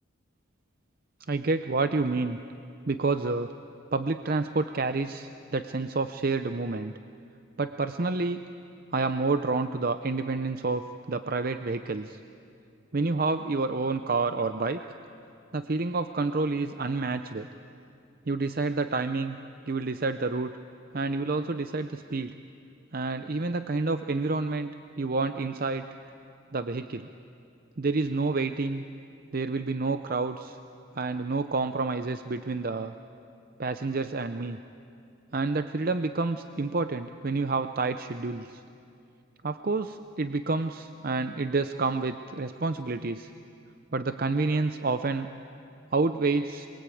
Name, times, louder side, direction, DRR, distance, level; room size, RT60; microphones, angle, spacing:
voice 1, 1.3-2.4 2.9-3.5 3.9-6.9 7.6-8.5 8.9-12.2 12.9-14.8 15.5-17.5 18.3-19.4 19.7-20.5 20.9-22.3 22.9-24.7 25.0-25.9 26.5-27.1 27.8-28.8 29.3-30.6 31.0-32.9 33.6-34.6 35.3-38.6 39.4-43.3 43.9-45.3 45.9-46.7, right 3 dB, 45° right, 9 dB, 0.6 m, -29 dB
27.5 x 22.5 x 8.5 m, 2.6 s
head